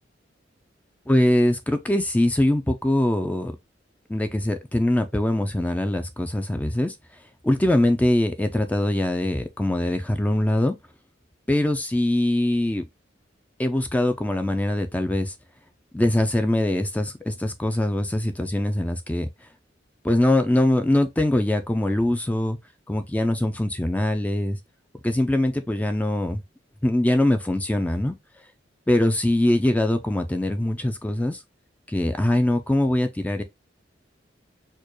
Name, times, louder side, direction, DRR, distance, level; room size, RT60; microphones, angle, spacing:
voice 1, 1.1-3.5 4.1-6.9 7.4-10.7 11.5-12.8 13.6-15.3 15.9-19.3 20.0-22.6 22.9-24.6 25.0-26.4 26.8-28.1 28.9-31.4 31.9-33.4, left 1 dB, 10° left, 0.4 m, -22 dB
4.4 x 2.3 x 2.9 m
head